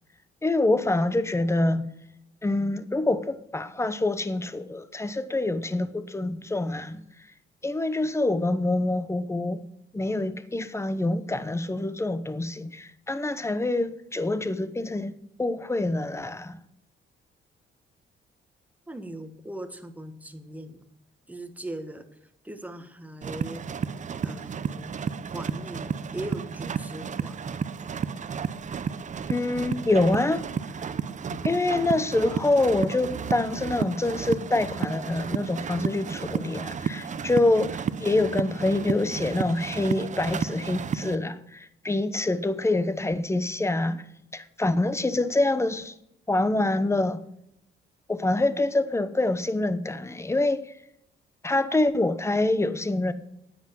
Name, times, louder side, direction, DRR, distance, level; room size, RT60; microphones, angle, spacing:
voice 1, 0.4-1.9 2.4-7.0 7.6-9.6 9.9-15.1 15.4-16.6 29.3-30.4 30.8-30.9 31.3-44.0 44.3-45.9 46.3-47.2 48.1-50.6 51.4-53.1, left 2 dB, 15° left, 1.0 m, -26 dB
voice 2, 18.9-20.8 21.3-23.6 24.2-24.9 25.3-27.5, right 1 dB, 10° right, 1.4 m, -39 dB
sound 1, 23.2-41.2, right 6 dB, 40° right, 0.7 m, -32 dB
9.5 x 8.0 x 7.6 m
cardioid pair, 90°, 20 cm